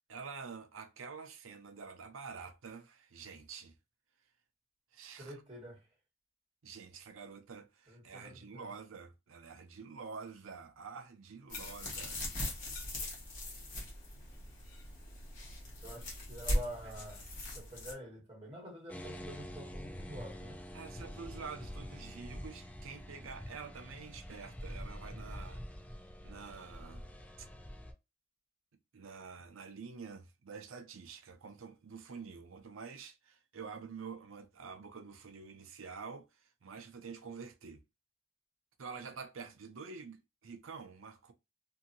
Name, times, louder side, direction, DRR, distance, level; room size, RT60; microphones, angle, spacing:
voice 1, 0.1-3.7 4.9-5.4 6.6-12.2 20.7-25.6 26.2-27.1 27.4-27.5 28.9-37.8 38.8-41.3, right 5 dB, 85° right, 0.6 m, -48 dB
voice 2, 5.2-5.9 7.9-8.7 15.8-17.2 17.5-20.6, equal, 30° right, 1.6 m, -47 dB
sound 1, 11.5-17.9, left 1 dB, 40° left, 1.2 m, -39 dB
sound 2, 18.9-27.9, equal, 10° left, 0.5 m, -46 dB
2.7 x 2.7 x 2.6 m
head